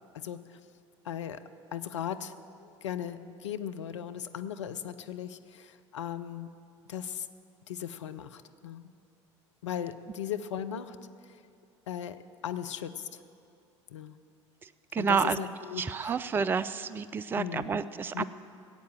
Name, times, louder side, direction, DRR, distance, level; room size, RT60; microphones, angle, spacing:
voice 1, 0.1-0.6 1.0-1.4 1.7-2.3 2.6-6.5 6.9-7.3 7.7-8.9 9.6-11.0 11.2-11.4 11.9-13.2 13.9-14.2 15.0-16.2 17.4-17.8 18.1-18.2, left 9 dB, 75° left, 9 dB, 0.6 m, -37 dB
voice 2, 14.6-15.4 15.8-18.2, right 5 dB, 15° right, 14 dB, 0.4 m, -30 dB
15.5 x 8.3 x 7.7 m, 2.4 s
figure-of-eight pair, 70°, 16 cm